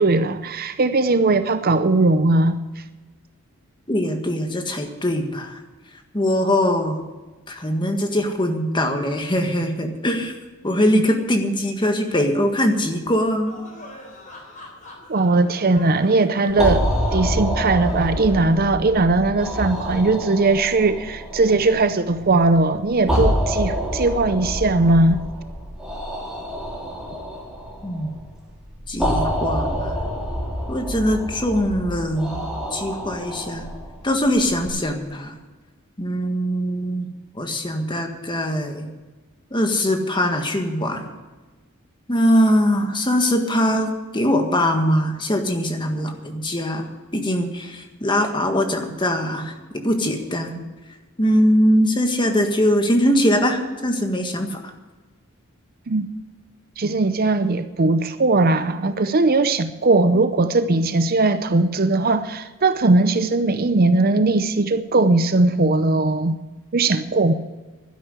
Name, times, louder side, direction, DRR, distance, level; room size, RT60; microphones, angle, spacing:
voice 1, 0.0-2.6 10.9-11.0 15.1-25.2 55.9-56.1 56.8-66.4 66.7-67.3, right 2 dB, 45° right, 0.6 m, -19 dB
voice 2, 3.9-5.6 6.1-7.0 7.5-10.4 10.6-13.6 27.8-28.1 28.9-30.0 30.7-32.4 32.7-33.7 34.0-35.4 36.0-37.1 37.3-38.9 39.5-41.1 42.1-50.6 51.2-54.6, equal, 20° left, 1.7 m, -22 dB
sound 1, 13.5-18.6, left 2 dB, 35° left, 3.9 m, -43 dB
sound 2, 16.5-34.7, equal, 5° right, 3.3 m, -27 dB
12.5 x 10.5 x 7.9 m
head